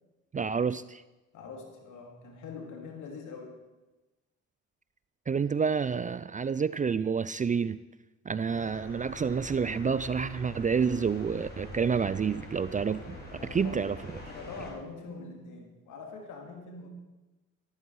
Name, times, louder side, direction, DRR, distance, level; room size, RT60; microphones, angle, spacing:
voice 1, 0.3-1.0 5.3-7.8 8.3-13.2 13.5-14.0, right 6 dB, 25° right, 0.4 m, -29 dB
voice 2, 1.3-3.6 13.4-13.9 14.3-16.9, left 4 dB, 80° left, 2.6 m, -43 dB
sound 1, 8.5-14.7, left 1 dB, 30° left, 4.5 m, -45 dB
13.5 x 13.0 x 4.8 m
cardioid pair, 90°, 30 cm